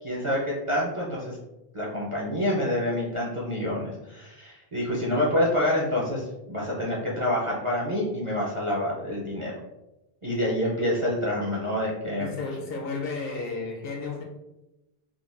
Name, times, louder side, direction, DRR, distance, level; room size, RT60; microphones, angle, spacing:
voice 1, 0.0-1.4 1.7-9.5 10.2-12.3, left 1 dB, 40° right, -5 dB, 0.5 m, -27 dB
voice 2, 12.2-14.2, left 4 dB, 65° left, 1 dB, 0.8 m, -33 dB
3.8 x 2.3 x 2.4 m, 0.97 s
omnidirectional pair, 1.1 m